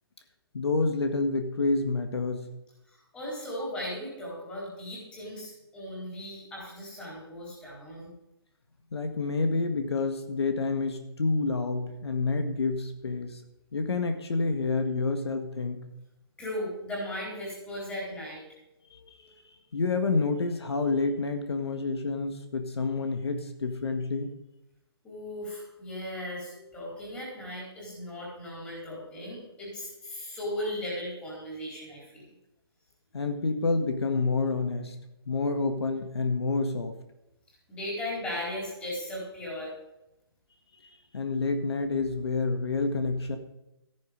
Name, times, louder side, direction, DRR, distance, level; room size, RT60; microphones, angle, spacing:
voice 1, 0.5-2.5 8.9-13.4 13.7-15.8 18.9-19.3 19.7-24.3 33.1-35.0 35.3-36.9 40.8-43.4, left 3 dB, 70° left, 6 dB, 1.8 m, -28 dB
voice 2, 2.9-8.1 16.4-18.4 25.0-32.2 37.7-39.7, left 1 dB, 10° left, -4 dB, 4.1 m, -37 dB
14.0 x 10.5 x 5.2 m, 0.90 s
hypercardioid pair, 160°, 14 cm